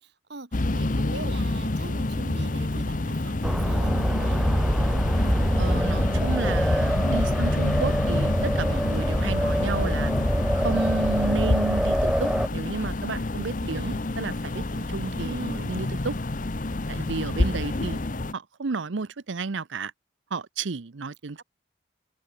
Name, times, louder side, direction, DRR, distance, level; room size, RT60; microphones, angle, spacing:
voice 1, 0.0-4.5 13.6-14.1 15.1-15.7 17.4-17.6 21.4-21.5, right 2 dB, 60° right, 2.0 m, -41 dB
sound 1, 0.5-18.3, left 2 dB, 45° left, 0.9 m, -28 dB
sound 2, 3.4-12.5, equal, ahead, 1.6 m, -25 dB
voice 2, 5.6-10.1 10.5-16.2 16.9-18.0 18.3-19.9 20.3-21.4, right 4 dB, 75° right, 0.7 m, -32 dB
head